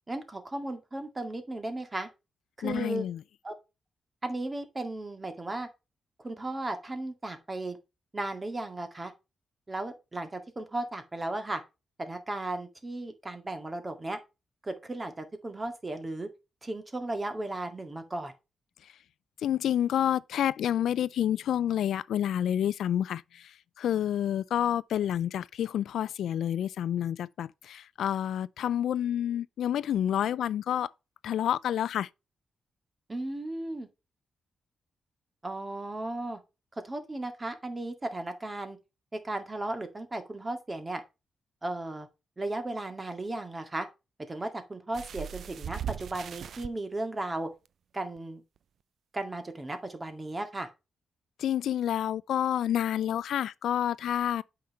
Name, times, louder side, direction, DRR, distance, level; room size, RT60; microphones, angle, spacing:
voice 1, 0.1-2.1 2.6-3.0 3.4-3.5 4.2-5.7 6.2-7.8 8.1-9.1 9.7-11.6 12.0-14.2 14.6-16.3 16.6-18.3 33.1-33.9 35.4-36.4 36.8-38.8 39.1-41.0 41.6-42.1 42.4-43.9 44.3-47.5 47.9-48.4 49.1-50.7, right 2 dB, 25° right, 2.0 m, -35 dB
voice 2, 2.6-3.2 19.4-30.9 31.2-32.1 51.4-54.4, left 10 dB, 85° left, 0.4 m, -29 dB
sound 1, 44.9-46.7 47.6-47.7 48.2-48.3, right 9 dB, 70° right, 0.5 m, -38 dB
8.5 x 5.8 x 3.1 m
cardioid pair, 95°, 0 cm